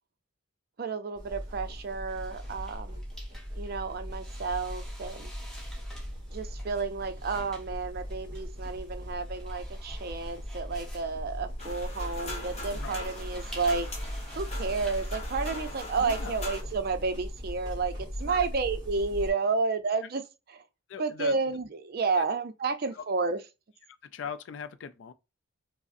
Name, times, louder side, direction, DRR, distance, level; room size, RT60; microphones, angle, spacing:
voice 1, 0.8-3.0 3.6-5.3 6.3-13.9 14.4-20.2 20.5-20.6 21.0-23.4, right 4 dB, 45° right, 0.4 m, -31 dB
sound 1, 1.2-19.3, equal, 20° right, 1.3 m, -39 dB
sound 2, 2.1-16.6, equal, ahead, 0.9 m, -51 dB
sound 3, 11.6-16.6, left 2 dB, 30° left, 0.9 m, -41 dB
voice 2, 16.0-16.4 18.2-18.5 20.9-21.4 22.2-22.3 22.9-23.0 23.9-25.1, left 6 dB, 60° left, 0.3 m, -40 dB
4.8 x 2.0 x 2.5 m
head